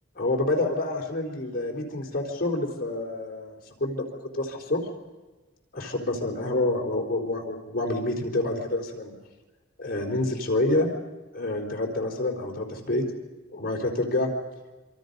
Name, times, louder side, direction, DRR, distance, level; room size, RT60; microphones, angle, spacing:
voice 1, 0.2-4.0 4.3-4.8 5.7-9.1 9.8-10.9 11.3-13.0 13.5-14.3, left 2 dB, 45° left, 1 dB, 3.8 m, -27 dB
26.5 x 26.0 x 5.4 m, 1.2 s
head